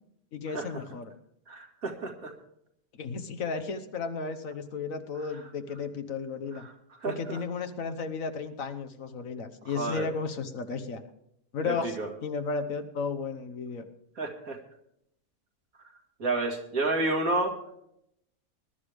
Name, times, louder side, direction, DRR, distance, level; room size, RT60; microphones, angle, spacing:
voice 1, 0.3-1.1 2.9-6.7 7.0-11.0 11.5-13.8, left 5 dB, 65° left, 9 dB, 1.4 m, -34 dB
voice 2, 1.5-2.3 7.0-7.4 9.7-10.1 11.6-12.1 14.2-14.6 16.2-17.5, right 2 dB, 70° right, 2 dB, 2.6 m, -30 dB
20.5 x 11.5 x 3.5 m, 0.76 s
omnidirectional pair, 1.5 m